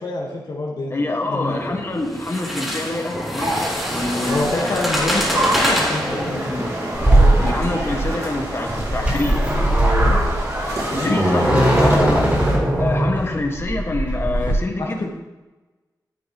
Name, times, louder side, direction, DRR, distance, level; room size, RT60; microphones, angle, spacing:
voice 1, 0.0-1.6 4.2-6.7 10.9-11.9 14.8-15.1, left 2 dB, 70° left, -3 dB, 1.6 m, -27 dB
voice 2, 0.9-3.5 3.9-5.0 7.4-9.4 11.0-11.5 11.8-12.3 12.8-15.1, left 2 dB, 35° left, 1 dB, 1.6 m, -26 dB
sound 1, 1.4-8.2, equal, 5° right, 2.7 m, -26 dB
sound 2, 3.4-12.6, right 1 dB, 45° right, 2.9 m, -27 dB
sound 3, 6.9-14.5, right 1 dB, 20° right, 4.2 m, -19 dB
12.5 x 10.5 x 3.0 m, 1.1 s
wide cardioid pair, 115°, 7 cm